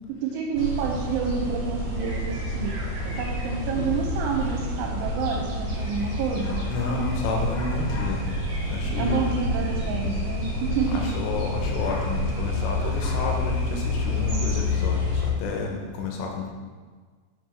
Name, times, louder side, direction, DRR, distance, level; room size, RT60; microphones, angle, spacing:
voice 1, 0.1-2.8 3.1-6.7 9.0-11.1, right 6 dB, 80° right, 0 dB, 2.9 m, -29 dB
sound 1, 0.5-15.3, left 2 dB, 60° right, 2.0 m, -28 dB
sound 2, 5.7-15.1, left 1 dB, 60° left, 2.6 m, -44 dB
voice 2, 6.7-8.2 8.6-9.4 10.9-16.5, left 4 dB, 80° left, 1 dB, 3.3 m, -30 dB
7.1 x 6.1 x 4.5 m, 1.5 s
omnidirectional pair, 6.0 m